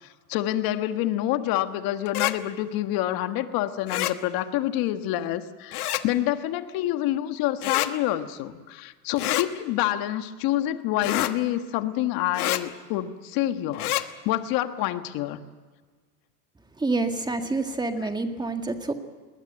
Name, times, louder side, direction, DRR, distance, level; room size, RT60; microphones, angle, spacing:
voice 1, 0.0-13.9 14.3-15.4, left 13 dB, 50° left, 9 dB, 1.6 m, -27 dB
sound 1, 2.1-2.3 3.9-4.1 5.7-6.0 7.6-7.9 9.2-9.5 11.0-11.3 12.3-12.6 13.7-14.0, left 14 dB, 85° left, 1.4 m, -26 dB
voice 2, 16.8-18.9, right 3 dB, 10° right, 6 dB, 1.9 m, -27 dB
21.0 x 19.0 x 9.0 m, 1.4 s
supercardioid pair, 110°, 44 cm